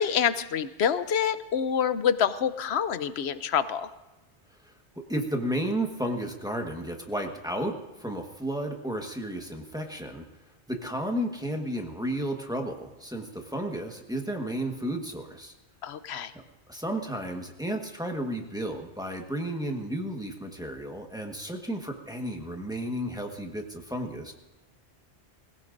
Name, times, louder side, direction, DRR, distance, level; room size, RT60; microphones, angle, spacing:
voice 1, 0.0-3.9 15.8-16.3, left 8 dB, 75° left, 13 dB, 0.9 m, -26 dB
voice 2, 5.1-10.2 10.7-15.5 16.3-16.4 16.7-24.3, right 1 dB, 5° right, 2 dB, 1.3 m, -33 dB
22.0 x 16.5 x 2.6 m, 1.1 s
omnidirectional pair, 1.1 m